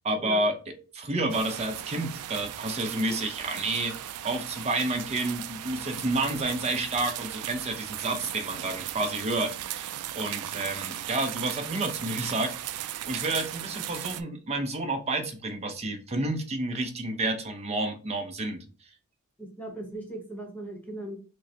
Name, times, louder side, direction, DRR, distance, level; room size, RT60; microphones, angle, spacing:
voice 1, 0.0-18.6, right 2 dB, 30° right, 5 dB, 0.6 m, -30 dB
sound 1, 1.3-14.2, right 12 dB, 80° right, 0.3 m, -37 dB
voice 2, 19.4-21.2, right 1 dB, 10° left, 1 dB, 1.0 m, -38 dB
6.2 x 2.1 x 2.8 m, 0.37 s
head